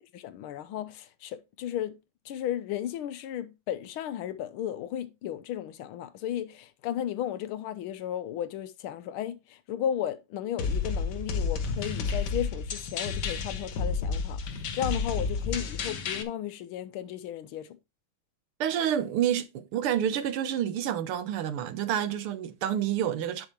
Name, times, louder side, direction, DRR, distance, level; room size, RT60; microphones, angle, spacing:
voice 1, 0.1-2.0 2.2-17.8, left 10 dB, 80° left, 1.6 m, -34 dB
sound 1, 10.6-16.2, left 4 dB, 60° left, 1.5 m, -31 dB
voice 2, 18.6-23.5, right 10 dB, 85° right, 1.8 m, -28 dB
10.5 x 5.6 x 3.1 m
omnidirectional pair, 2.3 m